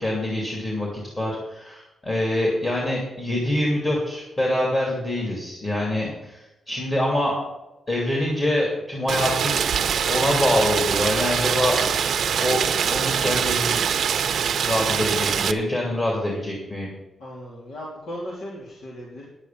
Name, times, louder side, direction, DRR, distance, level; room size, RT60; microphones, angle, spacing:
voice 1, 0.0-7.4 7.9-9.6 10.0-11.8 12.4-13.8 14.6-16.9, left 1 dB, 25° left, -2 dB, 2.7 m, -25 dB
Rain, 9.1-15.5, right 7 dB, 65° right, 0.7 m, -23 dB
voice 2, 14.8-15.1 17.2-19.3, equal, 75° left, -4 dB, 2.9 m, -37 dB
10.0 x 8.4 x 7.4 m, 1.0 s
wide cardioid pair, 175°, 0 cm